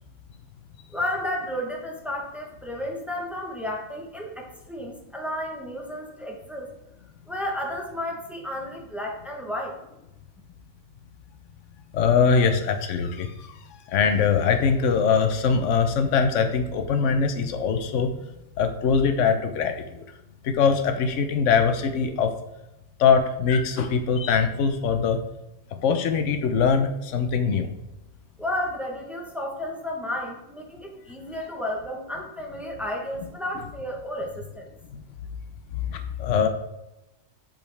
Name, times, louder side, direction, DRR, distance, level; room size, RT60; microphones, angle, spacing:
voice 1, 0.9-6.7 7.3-9.8 28.4-34.7, left 1 dB, ahead, 0 dB, 0.9 m, -32 dB
voice 2, 11.9-13.5 13.9-18.1 18.6-20.0 20.4-22.3 23.0-25.2 25.7-27.7 34.9-35.0 35.7-36.5, left 6 dB, 70° left, 7 dB, 1.1 m, -22 dB
7.7 x 5.0 x 3.4 m, 0.92 s
omnidirectional pair, 1.3 m